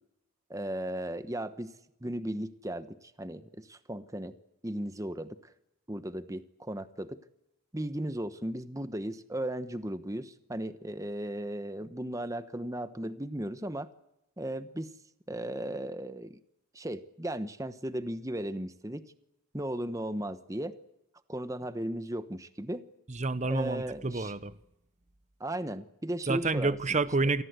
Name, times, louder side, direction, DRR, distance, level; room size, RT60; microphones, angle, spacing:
voice 1, 0.5-1.7 2.0-4.4 4.6-5.5 5.9-7.2 7.7-13.9 14.4-14.9 15.3-16.4 16.7-19.0 19.5-20.8 21.3-22.8 23.5-24.3 25.4-26.8, right 1 dB, 15° right, 1.0 m, -36 dB
voice 2, 23.1-24.5 26.3-27.4, right 3 dB, 30° right, 0.9 m, -29 dB
28.0 x 19.5 x 8.1 m
head